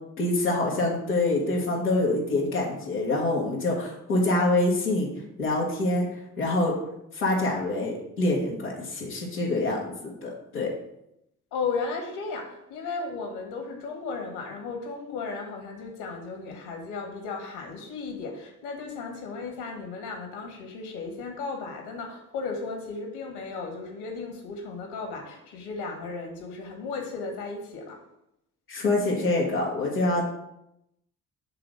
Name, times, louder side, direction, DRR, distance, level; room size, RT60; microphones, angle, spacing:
voice 1, 0.2-5.1 5.4-6.1 6.4-6.8 7.1-9.9 10.2-10.7 28.7-30.2, left 2 dB, 90° left, -8 dB, 1.2 m, -25 dB
voice 2, 11.5-28.0, left 4 dB, 65° left, 2 dB, 1.7 m, -35 dB
6.8 x 3.8 x 6.4 m, 0.82 s
figure-of-eight pair, 45°, 42 cm